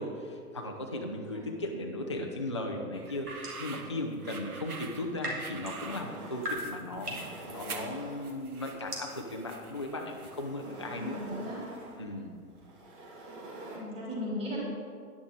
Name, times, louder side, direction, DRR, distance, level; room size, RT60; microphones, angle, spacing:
voice 1, 0.0-3.3 3.6-11.2 12.0-12.3, left 1 dB, 20° left, 1 dB, 0.3 m, -37 dB
sound 1, 2.9-3.7 4.8-12.5, equal, 85° right, 2.6 m, -43 dB
sound 2, 3.1-10.6, right 5 dB, 70° right, 1.1 m, -46 dB
sound 3, 5.4-6.6 7.0-8.6 9.7-13.8, right 1 dB, 35° right, 2.0 m, -46 dB
voice 2, 10.9-11.6 13.7-14.6, left 1 dB, 15° right, -7 dB, 2.6 m, -37 dB
9.9 x 9.8 x 3.7 m, 2.1 s
figure-of-eight pair, 120°, 46 cm